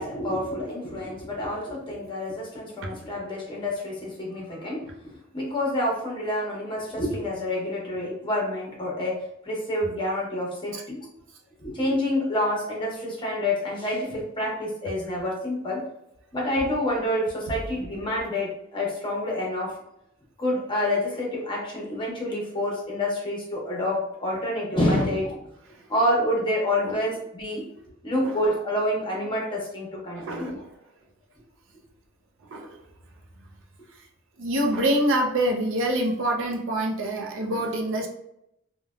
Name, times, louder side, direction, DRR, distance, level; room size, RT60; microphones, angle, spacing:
voice 1, 0.0-4.9 5.3-11.1 11.6-15.8 16.3-19.8 20.4-25.4 25.9-27.6 28.0-30.6, left 1 dB, 25° left, -3 dB, 0.9 m, -28 dB
voice 2, 30.2-30.7 32.5-32.8 34.4-38.1, right 1 dB, 65° right, 1 dB, 0.5 m, -26 dB
3.2 x 2.2 x 2.3 m, 0.78 s
head